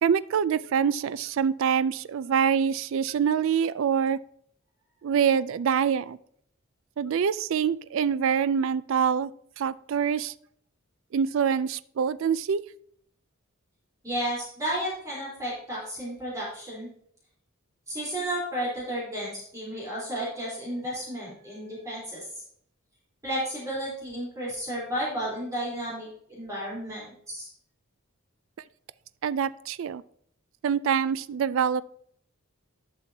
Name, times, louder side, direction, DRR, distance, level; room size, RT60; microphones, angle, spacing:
voice 1, 0.0-4.2 5.0-6.2 7.0-9.3 9.6-10.3 11.1-12.6 29.2-30.0 30.6-31.8, right 7 dB, 65° right, 16 dB, 0.3 m, -25 dB
voice 2, 14.0-16.9 17.9-22.3 23.2-27.5, right 1 dB, 15° right, -7 dB, 3.8 m, -32 dB
11.5 x 6.3 x 2.8 m, 0.64 s
head